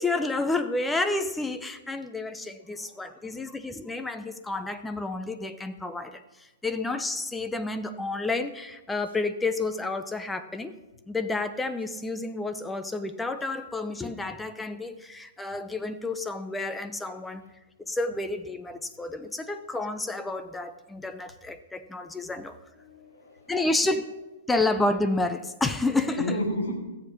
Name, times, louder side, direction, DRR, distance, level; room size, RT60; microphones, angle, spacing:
voice 1, 0.0-10.7 11.1-17.4 17.9-22.6 23.5-24.1 24.5-26.2, left 2 dB, 10° left, 9 dB, 0.7 m, -30 dB
voice 2, 2.6-3.5 22.6-23.6 26.2-26.8, equal, 80° left, -2 dB, 3.6 m, -34 dB
16.0 x 7.4 x 6.3 m, 1.1 s
figure-of-eight pair, 110°, 0 cm